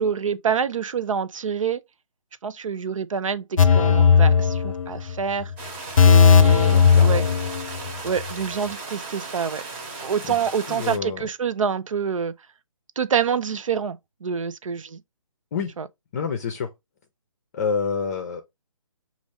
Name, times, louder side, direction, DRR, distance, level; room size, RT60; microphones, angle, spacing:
voice 1, 0.0-1.8 2.4-5.5 6.1-7.2 8.0-9.6 10.0-12.3 13.0-15.0 15.8-15.9, right 7 dB, 70° right, 0.6 m, -26 dB
sound 1, 3.6-5.1 5.4-5.5 6.0-7.9 8.2-8.3, left 6 dB, 80° left, 0.5 m, -16 dB
sound 2, 5.6-11.0, right 3 dB, 20° right, 1.0 m, -36 dB
voice 2, 6.7-7.4 10.3-10.4 10.7-11.2 15.5-15.7 16.1-16.7 17.5-18.4, left 6 dB, 30° left, 0.6 m, -28 dB
5.2 x 2.5 x 3.3 m
hypercardioid pair, 155°, 17 cm